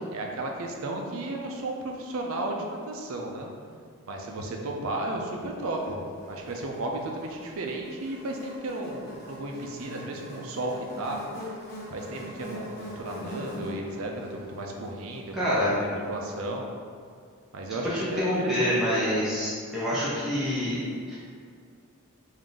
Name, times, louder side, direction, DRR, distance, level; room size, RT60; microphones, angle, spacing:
voice 1, 0.1-3.5 4.0-6.0 6.3-11.2 11.9-16.7 17.5-18.7, right 2 dB, 70° right, 1 dB, 0.5 m, -34 dB
Buzz, 5.7-16.1, equal, 45° left, 0.7 m, -43 dB
voice 2, 15.3-15.8 17.8-20.8 21.1-21.2, equal, ahead, -10 dB, 0.6 m, -26 dB
3.6 x 2.6 x 3.8 m, 2.2 s
head